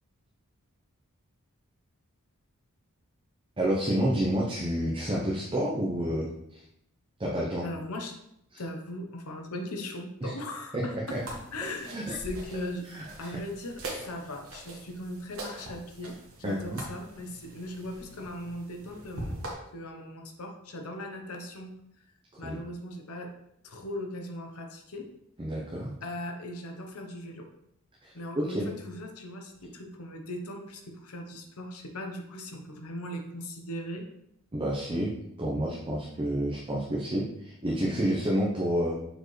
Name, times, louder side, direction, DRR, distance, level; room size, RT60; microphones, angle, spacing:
voice 1, 3.6-6.6 7.2-7.7 8.5-8.6 10.2-10.3 10.7-10.8 11.1-11.2 11.9-12.2 12.9-13.0 16.4-16.8 22.4-22.6 25.4-25.9 28.0-28.7 34.5-35.1 35.4-39.0, right 1 dB, 25° right, -4 dB, 0.8 m, -29 dB
voice 2, 7.6-8.1 8.6-11.2 11.5-12.9 13.2-21.7 22.4-23.3 23.6-25.1 26.0-27.5 28.1-34.0, left 1 dB, 75° left, 3 dB, 0.9 m, -39 dB
sound 1, 11.1-19.5, right 1 dB, 65° right, 1.4 m, -43 dB
6.5 x 4.5 x 3.2 m, 0.79 s
head